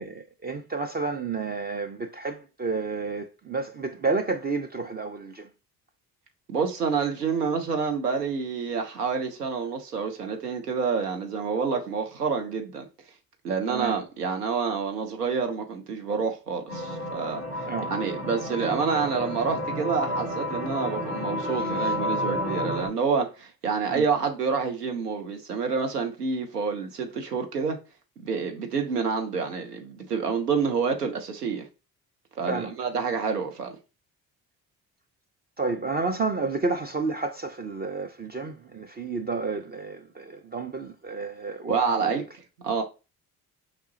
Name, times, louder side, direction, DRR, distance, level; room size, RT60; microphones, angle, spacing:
voice 1, 0.0-5.5 13.7-14.0 17.7-17.9 21.6-22.0 23.9-24.0 32.5-32.7 35.6-42.2, right 4 dB, 20° right, 0.4 m, -31 dB
voice 2, 6.5-12.9 13.4-17.4 17.9-27.8 28.2-31.7 32.4-33.8 41.7-42.2 42.6-42.8, right 5 dB, 90° right, 0.6 m, -28 dB
sound 1, 16.7-22.9, left 1 dB, 70° right, 2.8 m, -31 dB
5.0 x 3.5 x 2.7 m
figure-of-eight pair, 45°, 46 cm